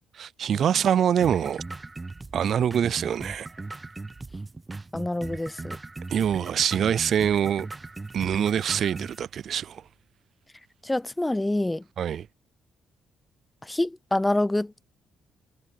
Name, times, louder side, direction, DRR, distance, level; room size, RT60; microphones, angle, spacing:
voice 1, 0.1-1.6 2.3-3.5 6.1-7.7 8.1-9.8 12.0-12.3, right 9 dB, 60° right, 0.3 m, -24 dB
sound 1, 1.2-9.2, right 3 dB, 20° right, 0.8 m, -38 dB
voice 2, 4.9-5.8 10.8-11.8 13.6-14.7, left 1 dB, 10° left, 0.6 m, -26 dB
cardioid pair, 90°, 0 cm